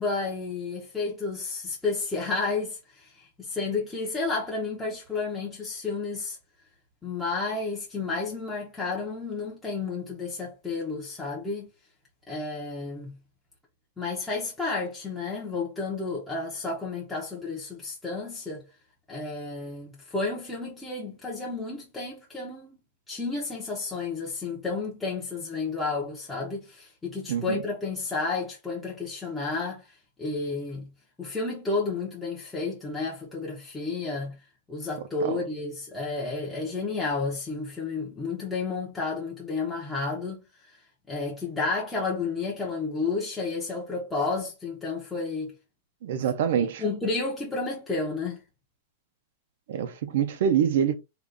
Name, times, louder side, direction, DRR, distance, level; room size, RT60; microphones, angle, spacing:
voice 1, 0.0-6.4 7.0-11.7 12.3-13.2 14.0-18.6 19.1-22.8 23.1-30.9 31.2-34.4 34.7-40.8 41.1-45.5 46.6-48.4, left 3 dB, 5° left, 0.7 m, -31 dB
voice 2, 46.0-46.8 49.7-51.0, right 8 dB, 60° right, 0.5 m, -25 dB
3.9 x 2.3 x 3.4 m
supercardioid pair, 170°, 0 cm